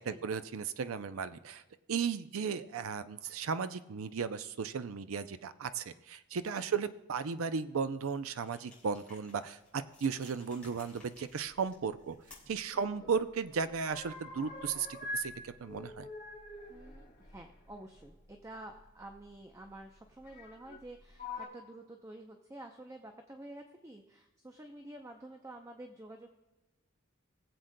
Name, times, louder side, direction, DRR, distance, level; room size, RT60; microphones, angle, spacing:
voice 1, 0.0-1.6 1.9-12.2 12.5-14.9 15.1-16.1, right 6 dB, 80° right, 12 dB, 0.5 m, -35 dB
sound 1, 8.4-12.7, left 3 dB, 5° left, 3.7 m, -58 dB
sound 2, 12.3-13.2 13.5-15.3 15.6-18.1 19.2-19.3 20.2-20.8 21.1-21.5, left 2 dB, 40° left, 2.9 m, -45 dB
voice 2, 16.7-26.3, right 1 dB, 15° right, 4 dB, 0.5 m, -50 dB
20.5 x 7.8 x 2.2 m, 1.1 s
head